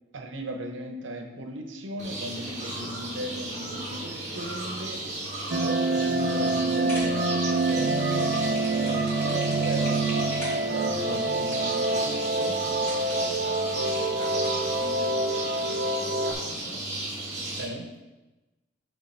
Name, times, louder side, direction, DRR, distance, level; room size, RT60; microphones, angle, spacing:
voice 1, 0.1-5.0 5.4-12.6 17.6-17.9, right 1 dB, 75° right, 3 dB, 0.8 m, -37 dB
sound 1, 2.0-17.7, right 2 dB, 35° right, 1.5 m, -34 dB
sound 2, 5.5-16.3, right 2 dB, 55° right, 0.4 m, -26 dB
sound 3, 6.7-14.9, equal, 15° left, 2.0 m, -43 dB
voice 2, 13.2-16.8, equal, 45° left, -5 dB, 2.2 m, -44 dB
7.3 x 3.2 x 4.3 m, 1.1 s
head